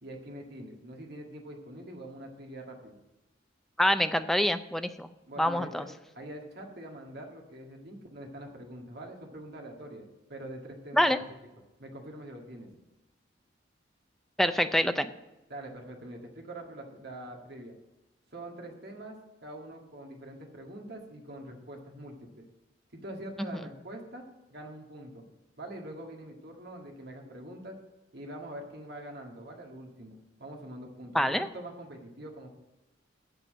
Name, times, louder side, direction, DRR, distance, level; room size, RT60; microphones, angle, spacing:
voice 1, 0.0-3.0 5.3-5.9 6.2-10.0 10.3-11.4 11.8-12.7 15.5-17.8 18.3-22.5 22.9-25.3 25.6-27.8 28.1-32.5, right 1 dB, 60° right, 1 dB, 1.8 m, -44 dB
voice 2, 3.8-5.1 5.4-5.8 10.9-11.2 14.4-15.1 31.1-31.5, equal, ahead, 9 dB, 0.4 m, -25 dB
7.3 x 6.9 x 7.3 m, 1.0 s
head